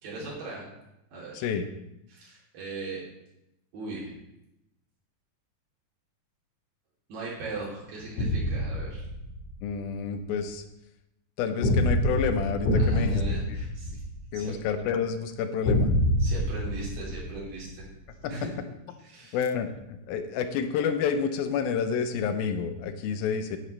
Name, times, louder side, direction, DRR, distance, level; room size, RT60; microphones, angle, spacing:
voice 1, 0.0-0.7 1.1-1.5 2.1-3.0 3.7-4.1 7.1-9.1 12.8-14.0 14.3-14.5 16.2-17.9 18.3-18.6 19.0-19.4, right 3 dB, 70° right, -6 dB, 4.7 m, -38 dB
sound 1, 8.2-9.6 11.6-14.6 15.6-17.8, left 1 dB, 55° left, 3.0 m, -26 dB
voice 2, 9.6-10.6 11.4-13.4 14.3-15.9 19.3-23.6, left 6 dB, 85° left, 8 dB, 2.5 m, -29 dB
11.0 x 9.4 x 3.2 m, 0.87 s
omnidirectional pair, 4.2 m